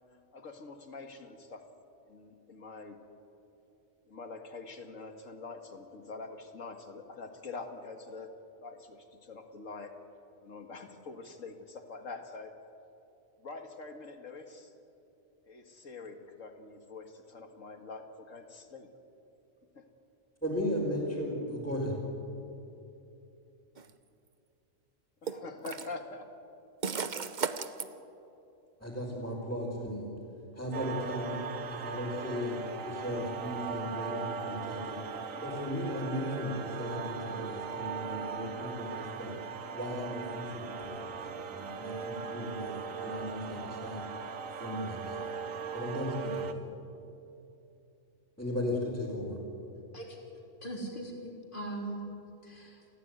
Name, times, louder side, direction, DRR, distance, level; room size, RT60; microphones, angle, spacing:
voice 1, 0.3-1.6 2.0-3.0 4.1-8.3 8.6-9.9 10.4-12.5 13.4-14.7 15.5-18.9 19.8-19.9 25.2-26.3, left 3 dB, 70° left, 6 dB, 2.3 m, -45 dB
voice 2, 20.4-22.0 28.8-30.1 30.6-31.4 31.7-32.6 32.8-35.0 35.4-39.3 39.7-44.0 44.6-45.2 45.7-46.5 48.4-49.4, left 1 dB, 5° left, -7 dB, 4.6 m, -36 dB
sound 1, 23.8-23.9 25.3-25.9 26.8-27.9, right 6 dB, 40° right, 0.9 m, -34 dB
sound 2, 30.7-46.5, right 6 dB, 75° right, 1.5 m, -39 dB
voice 3, 49.9-50.2 50.6-52.0 52.4-52.8, right 2 dB, 35° left, 0 dB, 4.0 m, -40 dB
29.5 x 15.0 x 9.5 m, 2.8 s
omnidirectional pair, 1.4 m